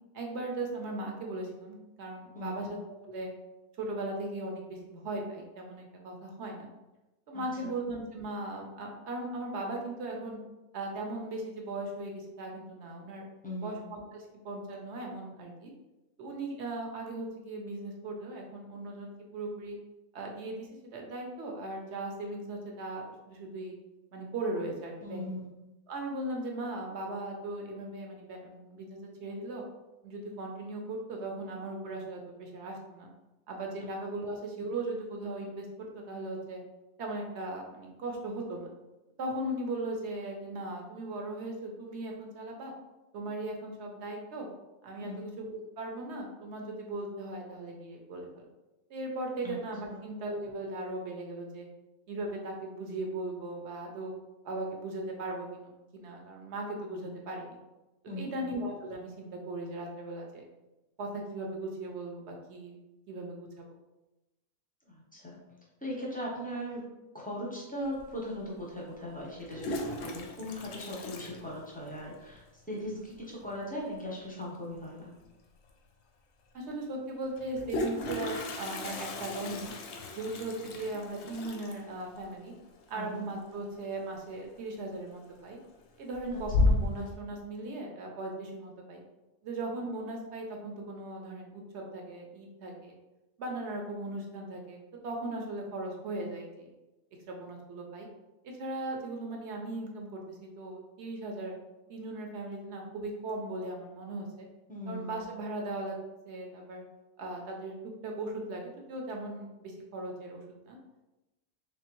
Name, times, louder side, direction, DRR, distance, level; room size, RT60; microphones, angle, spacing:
voice 1, 0.1-3.3 3.8-6.7 7.3-10.4 10.7-13.2 13.6-15.7 16.2-19.8 20.1-23.8 24.1-25.3 25.9-29.6 30.0-33.1 33.5-35.7 35.9-36.6 37.0-38.7 39.2-42.7 43.1-44.5 44.8-48.5 48.9-51.7 52.1-54.1 54.4-57.6 58.1-60.5 61.0-62.8 63.1-63.7 76.5-79.7 80.1-82.5 82.9-85.6 86.0-89.0 89.4-92.9 93.4-94.8 95.0-96.7 97.3-98.1 98.4-101.5 101.9-104.5 104.9-106.0 106.3-106.8 107.2-107.7 108.0-108.6 108.9-110.8, right 2 dB, 60° right, 1 dB, 0.8 m, -38 dB
voice 2, 2.3-2.7 7.3-7.4 13.4-13.8 25.0-25.5 45.0-45.2 49.4-49.6 49.9-50.0 58.1-58.4 64.9-65.4 65.8-66.9 67.1-75.1 82.9-83.2 86.3-86.4 104.7-105.2, equal, 10° left, -4 dB, 0.5 m, -39 dB
Toilet flush, 68.0-68.1 69.3-72.1 72.4-72.5 72.7-72.8 73.1-73.5 75.2-75.3 75.7-75.8 77.3-84.0 84.3-84.7 85.2-85.7 86.1-87.1, left 2 dB, 65° left, 0.7 m, -34 dB
3.6 x 3.2 x 3.0 m, 1.0 s
omnidirectional pair, 1.5 m